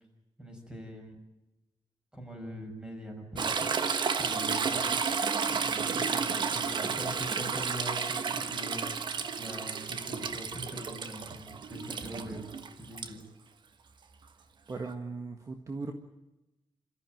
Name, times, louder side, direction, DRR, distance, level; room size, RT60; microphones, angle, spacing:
voice 1, 0.4-1.2 2.1-3.9 4.2-5.0 5.5-8.9 9.4-11.4 11.7-12.5 12.8-13.2, equal, 10° right, 3 dB, 6.2 m, -42 dB
Toilet flush / Trickle dribble, 3.4-13.1 14.9-15.0, right 5 dB, 60° right, 1.4 m, -32 dB
voice 2, 14.7-15.9, right 3 dB, 35° right, 5 dB, 1.7 m, -38 dB
27.5 x 14.5 x 9.3 m, 0.95 s
wide cardioid pair, 145°, 9 cm